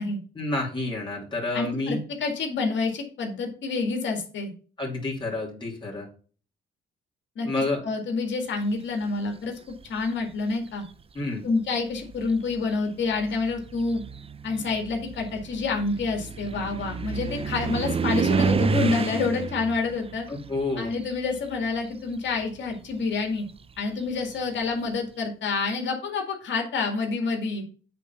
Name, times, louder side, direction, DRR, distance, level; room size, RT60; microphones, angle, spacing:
voice 1, 0.3-2.0 4.8-6.1 7.4-7.8 11.1-11.4 20.3-20.9, left 2 dB, 25° left, -3 dB, 2.9 m, -29 dB
voice 2, 1.5-4.5 7.4-9.5 9.8-10.8 11.4-14.0 14.4-20.3 20.8-23.4 23.8-27.6, left 4 dB, 65° left, 3 dB, 2.2 m, -28 dB
sound 1, 9.7-10.2 11.2-11.3 11.9-21.8 22.1-24.7, right 5 dB, 30° right, 0.6 m, -30 dB
8.3 x 4.0 x 5.9 m, 0.39 s
cardioid pair, 90°, 20 cm